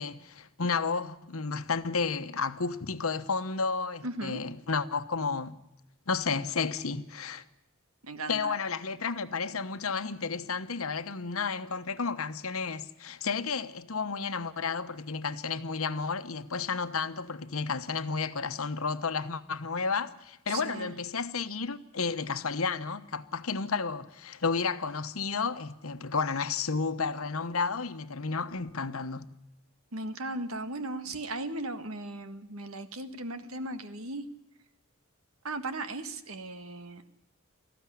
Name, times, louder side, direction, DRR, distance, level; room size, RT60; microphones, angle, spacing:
voice 1, 0.0-5.6 6.1-7.4 8.3-29.3, left 4 dB, 75° left, 1.1 m, -32 dB
voice 2, 4.0-4.4 8.0-8.5 20.5-20.9 29.9-34.2 35.4-37.1, right 2 dB, 80° right, 1.6 m, -37 dB
19.0 x 15.0 x 10.0 m
head